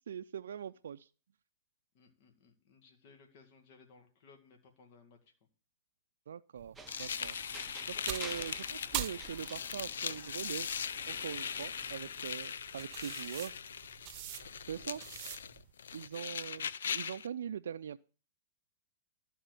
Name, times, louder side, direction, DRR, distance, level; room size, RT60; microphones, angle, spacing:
voice 1, 0.1-1.1 6.3-7.4 7.9-10.7 11.1-13.5 14.7-15.0 15.9-18.0, right 8 dB, 85° right, 9 dB, 0.4 m, -42 dB
voice 2, 1.9-5.3 14.8-14.9 16.3-16.7, left 4 dB, 55° left, 4 dB, 2.0 m, -61 dB
sound 1, 6.6-15.7, right 11 dB, 40° right, 0.8 m, -46 dB
sound 2, 6.8-12.4, right 4 dB, 10° right, 0.7 m, -53 dB
sound 3, 6.9-17.3, left 7 dB, 85° left, 0.5 m, -40 dB
12.5 x 4.2 x 8.1 m, 0.39 s
hypercardioid pair, 130°, 0 cm